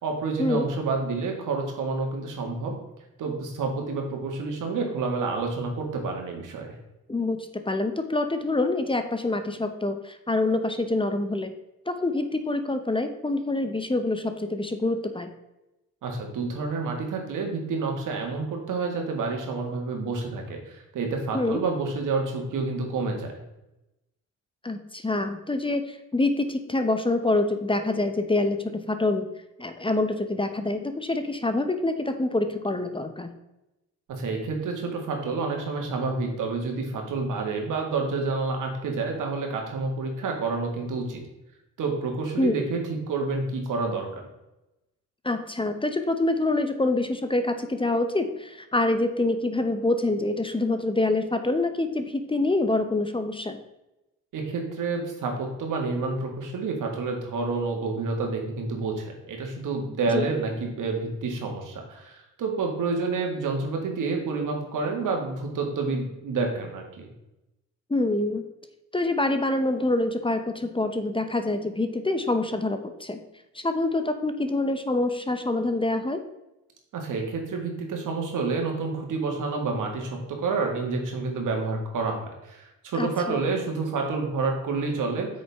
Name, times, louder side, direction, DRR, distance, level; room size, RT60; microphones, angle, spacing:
voice 1, 0.0-2.7 3.2-6.7 16.0-23.4 34.1-41.2 41.8-42.8 43.1-44.2 54.3-67.1 76.9-85.3, right 4 dB, 75° right, 2 dB, 2.1 m, -29 dB
voice 2, 7.1-11.5 11.9-15.3 21.3-21.6 24.6-29.3 29.6-33.3 42.4-42.5 45.2-53.6 60.1-60.3 67.9-68.4 68.9-73.2 73.5-76.2 83.0-83.4, left 2 dB, 15° left, 8 dB, 0.9 m, -26 dB
8.5 x 6.4 x 3.6 m, 0.94 s
cardioid pair, 75°, 32 cm